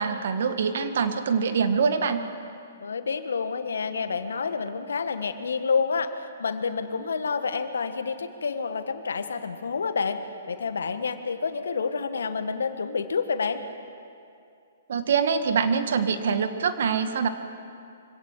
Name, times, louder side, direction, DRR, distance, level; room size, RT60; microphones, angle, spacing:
voice 1, 0.0-2.2 14.9-17.3, right 6 dB, 65° right, 9 dB, 1.6 m, -24 dB
voice 2, 2.8-6.1 6.4-10.2 10.5-13.6, left 5 dB, 75° left, 9 dB, 1.4 m, -28 dB
24.5 x 17.0 x 7.5 m, 2.5 s
hypercardioid pair, 130°, 0 cm